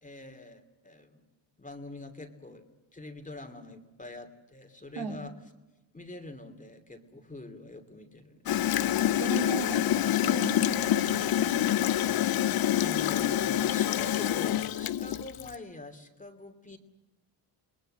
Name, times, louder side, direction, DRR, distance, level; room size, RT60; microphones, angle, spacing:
voice 1, 0.0-1.2 1.6-2.6 2.9-5.3 5.9-9.0 12.8-16.8, left 2 dB, 15° left, 6 dB, 2.8 m, -44 dB
Gurgling / Toilet flush, 8.5-15.5, left 11 dB, 50° left, 0.8 m, -26 dB
voice 2, 9.2-9.8 10.2-11.9, right 4 dB, 55° right, 3 dB, 3.8 m, -37 dB
28.5 x 20.5 x 7.6 m, 1.1 s
cardioid pair, 90°, 45 cm